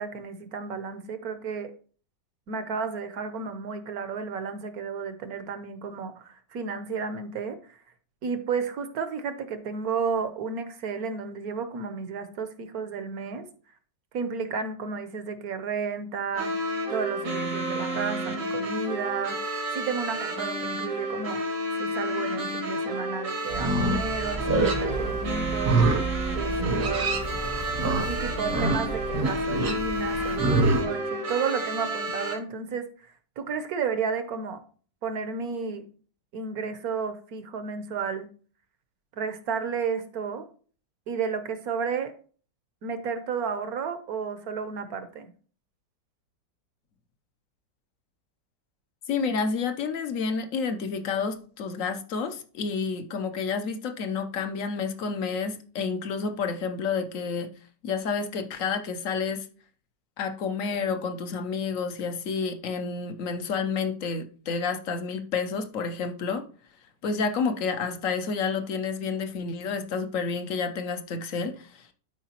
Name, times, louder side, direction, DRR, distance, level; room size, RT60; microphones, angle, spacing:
voice 1, 0.0-1.7 2.5-7.8 8.2-13.4 14.1-21.4 21.8-26.0 26.3-27.2 28.1-34.6 35.0-35.8 36.3-38.3 39.2-40.5 41.1-42.1 42.8-45.3, right 5 dB, 65° right, 9 dB, 1.2 m, -32 dB
sound 1, 16.3-32.3, right 1 dB, 85° right, 2.4 m, -31 dB
Livestock farm animals working animals, 23.5-30.8, right 2 dB, 40° right, 0.8 m, -27 dB
voice 2, 49.1-57.5 57.8-59.5 60.2-66.4 67.0-71.9, left 5 dB, 60° left, 8 dB, 1.0 m, -30 dB
12.0 x 4.8 x 2.9 m, 0.42 s
omnidirectional pair, 1.9 m